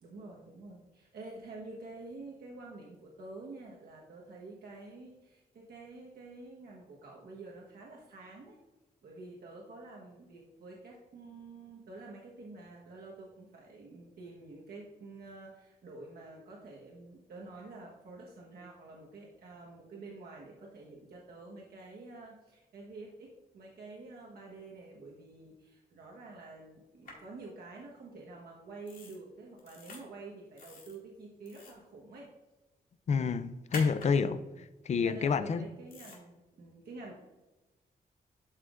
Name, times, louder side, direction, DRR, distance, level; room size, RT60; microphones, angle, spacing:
voice 1, 0.0-8.6 9.0-32.3 34.1-34.6 35.0-37.2, right 3 dB, 80° right, 1.2 m, -48 dB
sound 1, 27.0-27.1 28.9-29.2 29.6-30.0 30.6-30.9 31.4-31.8 33.7-34.1 35.9-36.2, left 3 dB, 65° left, 2.1 m, -45 dB
voice 2, 33.1-34.4 34.9-35.6, left 5 dB, 45° left, 0.4 m, -28 dB
12.0 x 5.8 x 2.5 m
wide cardioid pair, 180°, 16 cm